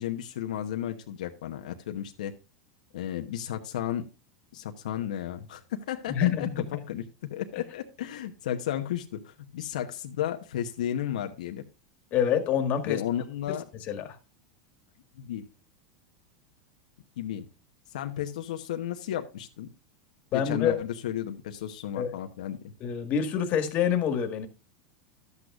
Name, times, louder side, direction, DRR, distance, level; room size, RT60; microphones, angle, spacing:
voice 1, 0.0-2.3 2.9-4.0 4.5-7.0 7.3-11.6 12.8-13.7 15.2-15.4 17.2-17.5 17.9-19.7 20.3-22.6, left 11 dB, 85° left, 1.0 m, -33 dB
voice 2, 6.1-6.7 12.1-13.0 13.9-14.2 20.3-20.8 22.0-22.1 22.8-24.5, left 8 dB, 40° left, 1.7 m, -26 dB
12.0 x 8.2 x 2.4 m
supercardioid pair, 125°, 4 cm